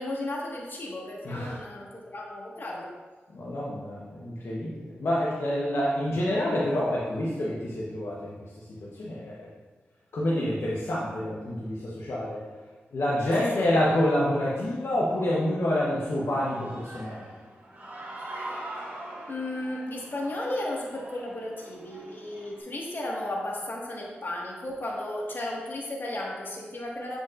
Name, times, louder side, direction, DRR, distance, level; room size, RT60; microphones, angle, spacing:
voice 1, 0.0-2.9 13.4-13.7 19.2-27.2, left 1 dB, 55° left, -3 dB, 1.5 m, -34 dB
voice 2, 1.2-1.6 3.3-9.5 10.1-12.4 12.9-17.3, left 1 dB, 75° left, -6 dB, 0.9 m, -28 dB
Human voice / Cheering, 16.0-22.6, right 1 dB, 45° right, 1.9 m, -42 dB
7.8 x 5.1 x 2.5 m, 1.3 s
cardioid pair, 45°, 4 cm